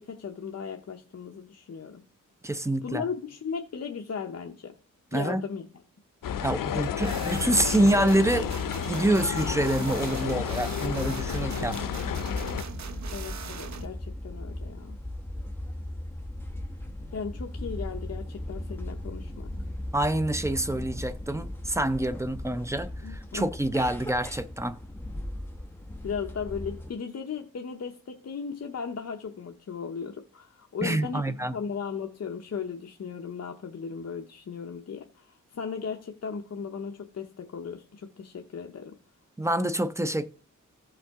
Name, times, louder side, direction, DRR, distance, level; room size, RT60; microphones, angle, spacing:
voice 1, 0.0-2.0 2.8-4.7 5.1-5.6 11.5-11.8 13.1-15.0 17.1-19.5 23.0-23.5 26.0-39.0, left 6 dB, 50° left, 0.8 m, -36 dB
voice 2, 2.4-3.1 5.1-5.4 6.4-8.5 8.9-11.8 19.9-24.8 30.8-31.5 39.4-40.3, right 1 dB, 10° right, 0.5 m, -26 dB
sound 1, 6.2-12.6, left 8 dB, 85° left, 0.6 m, -31 dB
sound 2, 7.0-13.9, right 6 dB, 60° right, 0.8 m, -40 dB
sound 3, 11.1-26.9, left 1 dB, 5° left, 0.9 m, -38 dB
15.0 x 5.6 x 3.6 m
wide cardioid pair, 165°, 32 cm